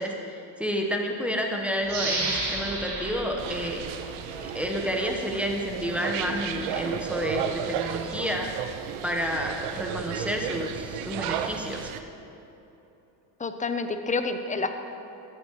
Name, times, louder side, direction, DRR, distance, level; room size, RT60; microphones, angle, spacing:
voice 1, 0.0-3.8 4.3-8.5 9.0-11.9, equal, 5° right, 0 dB, 1.0 m, -30 dB
sound 1, 1.9-4.6 5.0-5.1, right 3 dB, 55° right, 2.4 m, -32 dB
sound 2, 3.4-12.0, right 8 dB, 75° right, 0.7 m, -34 dB
voice 2, 13.4-14.7, left 3 dB, 15° left, 8 dB, 0.6 m, -28 dB
13.0 x 8.7 x 3.1 m, 3.0 s
supercardioid pair, 85°, 49 cm